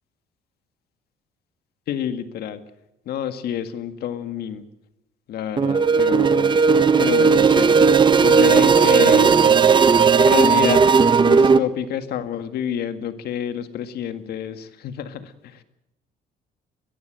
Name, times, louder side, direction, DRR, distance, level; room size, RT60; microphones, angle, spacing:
voice 1, 1.9-2.6 3.1-4.6 5.3-6.6 7.0-9.4 10.2-10.8 11.2-15.6, left 9 dB, 70° left, 10 dB, 2.0 m, -28 dB
sound 1, 5.6-11.6, right 5 dB, 30° right, 1.0 m, -15 dB
22.0 x 15.0 x 9.0 m, 0.88 s
cardioid pair, 110°, 17 cm